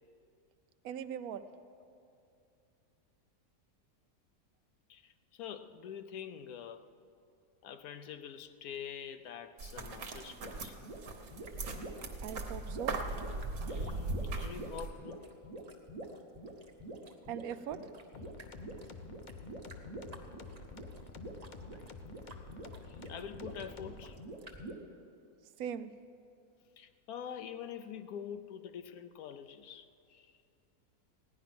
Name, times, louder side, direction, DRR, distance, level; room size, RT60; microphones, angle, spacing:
voice 1, 0.8-1.5 12.2-12.9 17.2-17.8 25.6-25.9, right 9 dB, 80° right, 12 dB, 1.0 m, -40 dB
voice 2, 4.9-6.9 7.6-10.8 13.7-15.3 22.9-24.2 26.8-30.3, left 8 dB, 80° left, 10 dB, 1.2 m, -45 dB
sound 1, 9.6-14.9, right 3 dB, 60° right, 1.5 m, -39 dB
sound 2, 10.4-24.7, right 1 dB, 30° right, 1.0 m, -47 dB
sound 3, 18.1-24.1, left 4 dB, 45° left, 0.6 m, -50 dB
16.0 x 10.5 x 6.0 m, 2.5 s
omnidirectional pair, 1.5 m